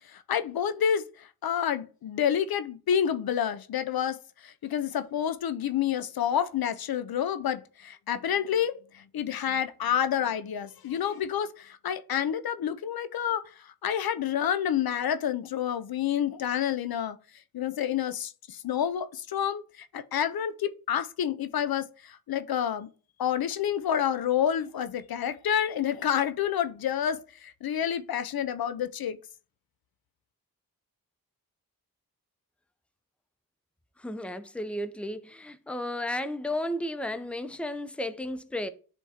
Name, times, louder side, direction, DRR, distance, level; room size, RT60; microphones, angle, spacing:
voice 1, 0.1-17.2 17.5-22.9 23.2-29.2, left 9 dB, 85° left, 0.5 m, -29 dB
voice 2, 34.0-38.7, left 1 dB, 5° left, 0.5 m, -33 dB
10.0 x 3.5 x 2.8 m
cardioid pair, 50°, 36 cm